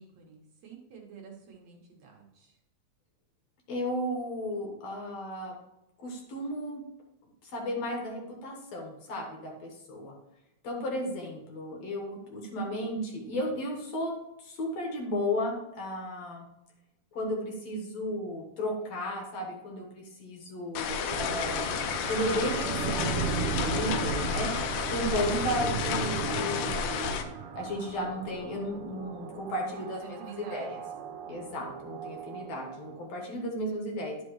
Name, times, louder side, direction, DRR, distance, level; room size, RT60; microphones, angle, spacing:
voice 1, 0.0-2.6 25.0-25.4 29.8-30.9, right 9 dB, 65° right, 0 dB, 2.2 m, -47 dB
voice 2, 3.7-5.6 6.0-6.8 7.4-10.1 10.6-14.1 14.4-16.4 17.1-21.7 22.0-27.2 27.5-30.8 31.3-34.2, left 1 dB, 65° left, 0 dB, 2.4 m, -34 dB
sound 1, 20.8-27.2, left 7 dB, 80° left, 2.2 m, -31 dB
sound 2, 21.1-33.1, right 6 dB, 80° right, 2.1 m, -36 dB
11.0 x 5.4 x 3.1 m, 0.90 s
omnidirectional pair, 3.5 m